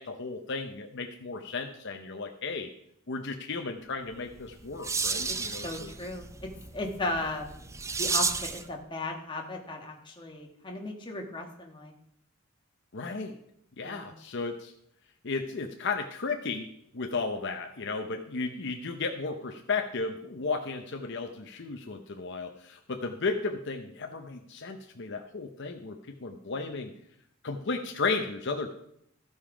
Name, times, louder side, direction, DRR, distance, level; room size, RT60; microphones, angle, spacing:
voice 1, 0.0-2.7 3.1-5.9 12.9-13.4 13.8-14.7 15.2-16.7 16.9-26.9 27.4-28.7, left 4 dB, 55° left, 5 dB, 0.7 m, -34 dB
sound 1, 4.3-8.7, right 4 dB, 15° right, 0.4 m, -33 dB
voice 2, 5.6-7.7 8.0-11.9 13.8-14.1, left 2 dB, 25° left, 1 dB, 1.5 m, -36 dB
14.0 x 5.4 x 5.0 m, 0.72 s
head